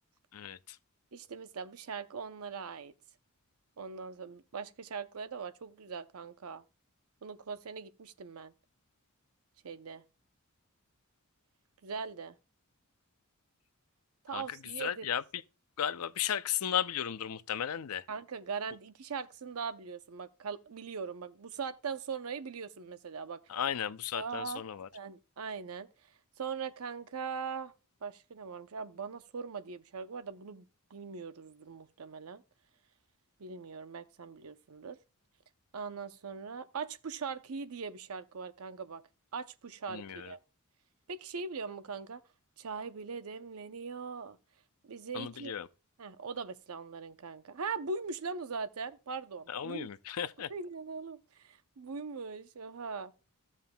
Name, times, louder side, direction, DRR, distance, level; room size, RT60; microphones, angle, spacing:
voice 1, 0.3-0.8 14.3-15.4 15.8-18.1 23.5-24.9 39.9-40.3 45.1-45.7 49.5-50.5, left 9 dB, 90° left, 0.5 m, -35 dB
voice 2, 1.1-2.9 3.8-6.6 7.2-8.5 9.6-10.0 11.8-12.4 14.2-15.1 18.1-23.4 24.1-24.6 24.9-25.9 26.4-27.7 28.0-32.4 33.4-35.0 35.7-39.0 39.3-40.4 41.1-42.2 42.6-44.4 44.8-45.5 46.0-49.9 50.5-53.1, right 5 dB, 90° right, 0.6 m, -41 dB
15.0 x 7.3 x 2.2 m
head